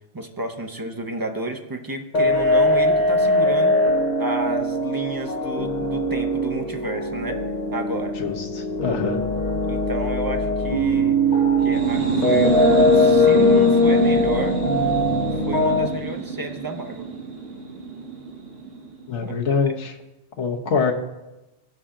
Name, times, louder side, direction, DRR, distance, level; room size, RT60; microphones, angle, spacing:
voice 1, 0.1-3.8 4.2-7.4 7.7-8.2 9.6-11.2 11.6-12.7 12.9-14.6 15.4-17.1 19.2-19.3, right 2 dB, 25° right, 4 dB, 0.6 m, -31 dB
sound 1, 2.1-15.9, left 1 dB, 40° left, 1.2 m, -20 dB
voice 2, 8.2-9.2 19.1-19.9 20.4-20.9, left 5 dB, 75° left, 1 dB, 1.4 m, -24 dB
sound 2, 11.6-19.1, right 4 dB, 55° right, 1.6 m, -28 dB
16.0 x 5.6 x 3.7 m, 1.0 s
omnidirectional pair, 1.2 m